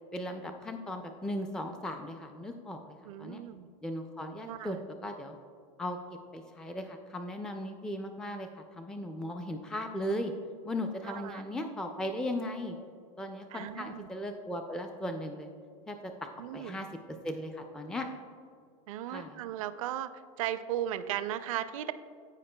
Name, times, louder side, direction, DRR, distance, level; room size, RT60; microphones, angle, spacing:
voice 1, 0.1-3.4 3.8-4.8 5.0-5.4 5.8-6.0 6.3-10.3 10.6-12.8 13.2-15.5 15.9-16.9 17.2-18.1 19.1-19.4, left 1 dB, 5° left, 5 dB, 0.4 m, -37 dB
voice 2, 3.1-3.7 4.4-4.8 11.0-11.4 13.5-14.1 16.4-16.8 18.9-20.1 20.4-21.9, right 12 dB, 75° right, 13 dB, 0.4 m, -36 dB
13.0 x 4.8 x 2.2 m, 2.2 s
supercardioid pair, 110°, 17 cm